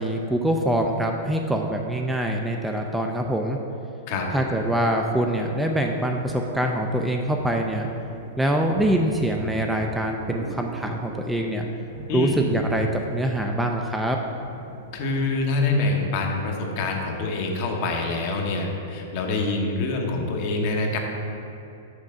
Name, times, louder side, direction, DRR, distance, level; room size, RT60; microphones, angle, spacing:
voice 1, 0.0-3.6 4.3-7.9 8.4-11.6 12.1-14.2, right 1 dB, 5° right, 2 dB, 0.3 m, -24 dB
sound 1, 4.1-15.6, right 2 dB, 50° right, 0.7 m, -39 dB
voice 2, 14.9-21.0, left 3 dB, 50° left, 1 dB, 1.0 m, -25 dB
6.4 x 5.5 x 3.6 m, 2.9 s
hypercardioid pair, 140°, 0 cm